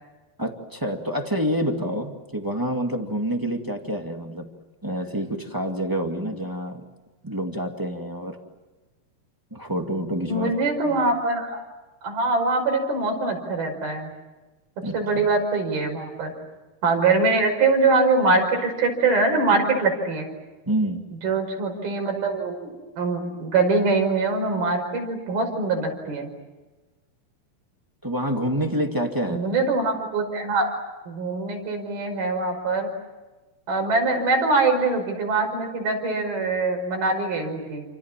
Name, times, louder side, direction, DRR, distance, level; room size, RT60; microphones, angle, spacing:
voice 1, 0.4-4.5 4.8-6.8 7.2-8.4 9.5-10.5 10.8-11.0 14.8-15.3 20.6-21.1 28.0-29.5, equal, 10° right, 3 dB, 1.1 m, -27 dB
voice 2, 10.3-11.6 12.0-14.1 14.9-16.3 16.8-20.3 21.2-26.3 29.3-30.7 31.1-32.9 33.7-37.8, right 3 dB, 85° right, 3 dB, 7.3 m, -23 dB
29.0 x 27.0 x 7.5 m, 1.2 s
omnidirectional pair, 4.2 m